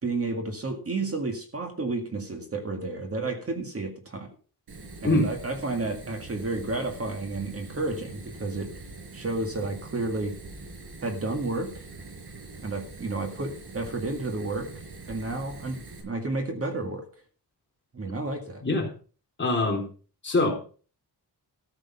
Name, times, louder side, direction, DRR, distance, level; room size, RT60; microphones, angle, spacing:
voice 1, 0.0-4.3 5.0-8.7 9.1-10.3 11.0-11.9 12.6-17.1 17.9-18.6, right 3 dB, 35° right, 4 dB, 1.9 m, -31 dB
Fire, 4.7-16.0, right 3 dB, 75° right, 5.1 m, -44 dB
voice 2, 19.4-19.9 20.2-20.5, left 2 dB, 30° left, 0 dB, 3.4 m, -23 dB
14.0 x 6.7 x 5.7 m, 0.40 s
wide cardioid pair, 160°, 38 cm